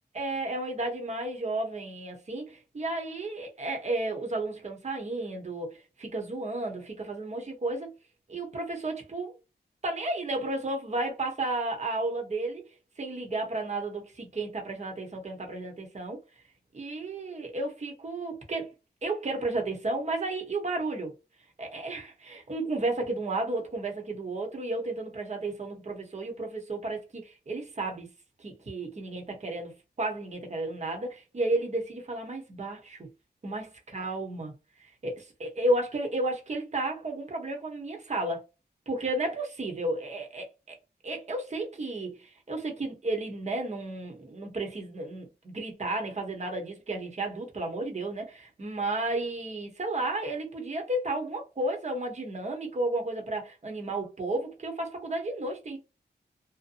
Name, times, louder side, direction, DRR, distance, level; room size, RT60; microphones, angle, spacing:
voice 1, 0.1-7.9 8.3-9.3 9.8-12.7 13.0-16.2 16.7-18.7 19.0-21.1 21.6-28.1 28.4-33.1 33.4-33.7 33.9-34.5 34.8-38.4 38.9-40.8 41.0-55.8, right 2 dB, 40° right, 0.9 m, -33 dB
2.7 x 2.1 x 2.5 m
wide cardioid pair, 105°, 17 cm